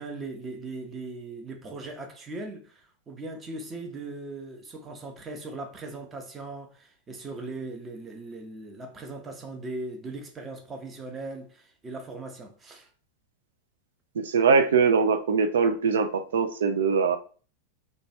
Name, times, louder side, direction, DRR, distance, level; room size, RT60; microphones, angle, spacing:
voice 1, 0.0-12.9, right 2 dB, 20° right, 0.7 m, -39 dB
voice 2, 14.1-17.2, right 5 dB, 65° right, 0.4 m, -22 dB
3.0 x 2.3 x 4.0 m
figure-of-eight pair, 90°, 0 cm